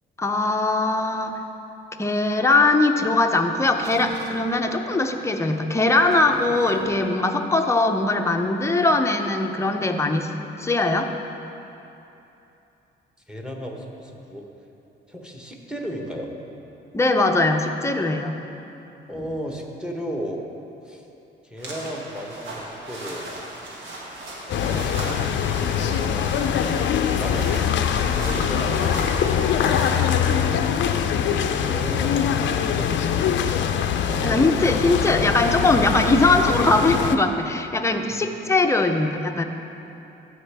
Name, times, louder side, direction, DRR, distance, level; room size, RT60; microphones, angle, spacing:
voice 1, 0.2-1.4 2.0-11.1 16.9-18.4 34.2-39.4, left 2 dB, 15° left, 4 dB, 0.6 m, -21 dB
sound 1, 3.8-9.4, right 3 dB, 60° right, 0.8 m, -41 dB
voice 2, 13.3-14.4 15.1-16.3 19.1-20.4 20.8-21.0 21.4-23.3 24.5-26.7 27.2-27.5 28.2-29.3 31.5-33.2 34.0-34.5 35.0-35.2, equal, 5° right, 1 dB, 1.1 m, -35 dB
sound 2, 21.6-30.2, right 1 dB, 80° right, 1.5 m, -37 dB
sound 3, 24.5-37.2, left 8 dB, 70° left, 0.5 m, -23 dB
14.5 x 5.0 x 3.4 m, 2.9 s
cardioid pair, 90°, 20 cm